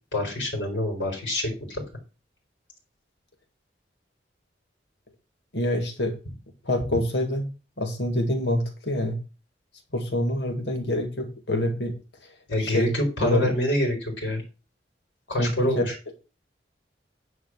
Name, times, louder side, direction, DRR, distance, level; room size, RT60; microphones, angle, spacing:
voice 1, 0.1-1.8 12.5-14.4 15.3-15.9, left 1 dB, 85° left, 0 dB, 4.4 m, -26 dB
voice 2, 5.5-6.2 6.6-7.4 7.8-9.2 9.9-12.0 12.6-12.9 13.2-13.6 15.4-15.8, left 1 dB, 70° left, 4 dB, 2.1 m, -26 dB
10.0 x 4.8 x 6.1 m, 0.32 s
head